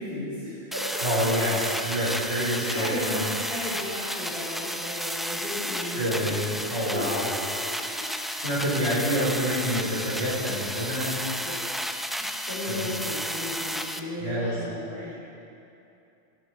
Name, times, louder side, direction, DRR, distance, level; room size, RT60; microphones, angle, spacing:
voice 1, 0.0-1.0 1.9-2.0 2.6-6.3 6.7-7.2 7.5-8.1 11.3-11.8 12.2-15.1, left 1 dB, 45° right, -10 dB, 4.5 m, -35 dB
sound 1, 0.7-14.0, equal, ahead, 0.3 m, -32 dB
voice 2, 1.0-3.2 5.9-7.3 8.4-11.2 12.7-12.8 14.2-14.6, equal, 80° right, -6 dB, 4.8 m, -27 dB
19.0 x 14.5 x 4.8 m, 2.7 s
omnidirectional pair, 1.2 m